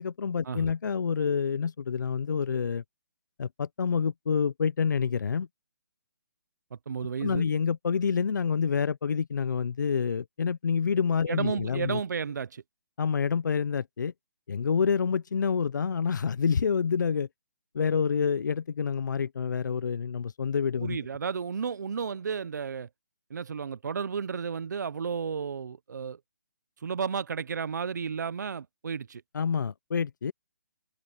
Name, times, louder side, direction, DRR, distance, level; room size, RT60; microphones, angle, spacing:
voice 1, 0.0-2.8 3.4-5.5 7.2-12.0 13.0-14.1 14.5-17.3 17.7-21.0 29.3-30.3, left 6 dB, 80° left, 0.6 m, -27 dB
voice 2, 6.7-7.4 11.3-12.6 20.8-22.9 23.3-26.2 26.8-29.2, right 6 dB, 70° right, 0.6 m, -33 dB
hypercardioid pair, 175°, 10 cm